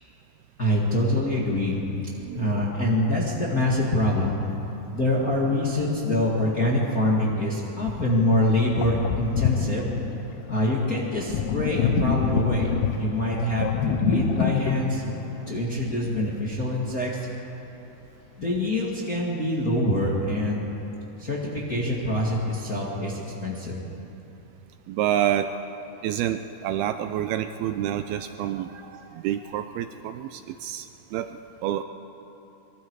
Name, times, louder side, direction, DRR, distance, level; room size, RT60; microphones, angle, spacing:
voice 1, 0.6-1.8 2.3-4.4 4.9-9.9 10.5-15.0 15.5-17.3 18.4-20.6 21.2-23.7, left 1 dB, 35° left, -4 dB, 1.5 m, -25 dB
voice 2, 2.2-3.0 24.9-25.5 26.0-31.8, right 11 dB, 80° right, 9 dB, 2.3 m, -29 dB
Sink (filling or washing), 8.1-8.2 8.8-16.1, left 8 dB, 75° left, 2.8 m, -28 dB
24.5 x 23.0 x 4.8 m, 3.0 s
omnidirectional pair, 4.8 m